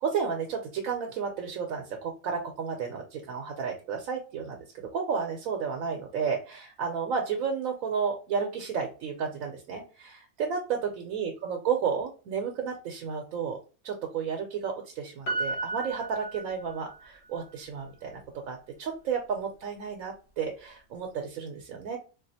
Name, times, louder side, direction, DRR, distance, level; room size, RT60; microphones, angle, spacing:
voice 1, 0.0-13.6 13.8-22.0, right 6 dB, 80° right, 2 dB, 1.0 m, -32 dB
Piano, 15.3-17.0 17.4-17.5, right 3 dB, 55° left, 1.0 m, -34 dB
3.8 x 2.4 x 2.7 m, 0.35 s
omnidirectional pair, 1.4 m